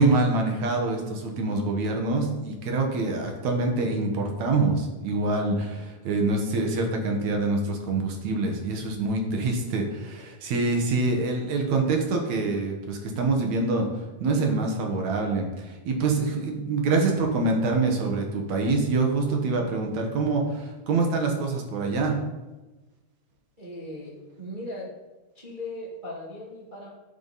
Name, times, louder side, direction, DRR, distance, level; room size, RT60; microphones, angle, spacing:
voice 1, 0.0-13.9 14.2-22.2, right 3 dB, 60° right, 2 dB, 2.4 m, -25 dB
voice 2, 23.6-24.9 25.3-26.9, left 1 dB, 20° right, -6 dB, 1.2 m, -38 dB
13.0 x 5.6 x 4.1 m, 1.1 s
omnidirectional pair, 4.0 m